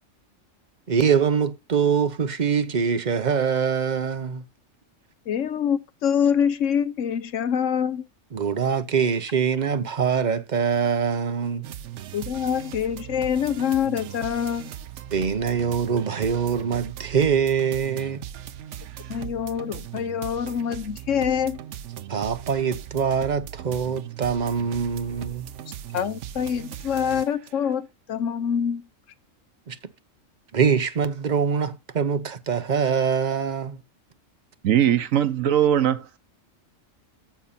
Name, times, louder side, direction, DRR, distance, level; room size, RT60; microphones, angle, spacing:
voice 1, 0.9-4.4 8.3-11.7 15.1-18.2 22.1-25.4 29.7-29.8 30.5-33.8, right 6 dB, 40° right, 0.8 m, -24 dB
voice 2, 5.3-8.1 12.1-14.7 19.1-21.6 25.9-28.8, left 8 dB, 70° left, 1.2 m, -25 dB
sound 1, 11.6-27.7, right 11 dB, 65° right, 1.0 m, -39 dB
voice 3, 34.6-36.2, right 10 dB, 80° right, 1.3 m, -20 dB
10.0 x 7.0 x 4.2 m
omnidirectional pair, 1.4 m